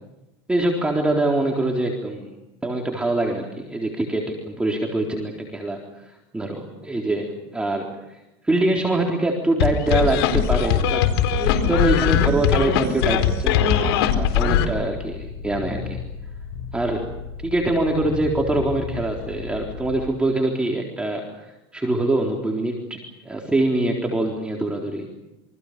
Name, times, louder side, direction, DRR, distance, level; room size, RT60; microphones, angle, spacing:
voice 1, 0.5-2.3 2.6-8.2 8.4-11.0 11.3-13.7 14.1-16.0 16.7-17.1 17.4-25.1, right 2 dB, 10° right, 0 dB, 4.0 m, -24 dB
sound 1, 9.6-14.6, left 9 dB, 85° left, 4.2 m, -20 dB
sound 2, 14.0-20.0, left 6 dB, 50° left, 6.1 m, -35 dB
28.5 x 25.5 x 6.9 m, 0.96 s
supercardioid pair, 135°, 13 cm